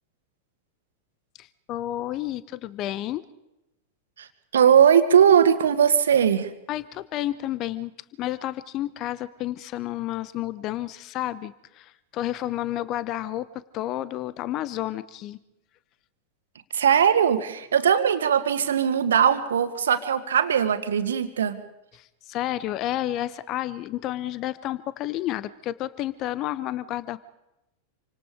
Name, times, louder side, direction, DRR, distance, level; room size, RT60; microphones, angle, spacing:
voice 1, 1.4-3.2 6.7-7.9 8.2-13.5 13.7-15.4 21.9-27.2, left 14 dB, 35° left, 17 dB, 0.9 m, -31 dB
voice 2, 4.5-6.5 16.7-21.6, right 8 dB, 65° right, 10 dB, 1.9 m, -20 dB
28.0 x 25.0 x 5.1 m, 0.91 s
figure-of-eight pair, 90°, 0 cm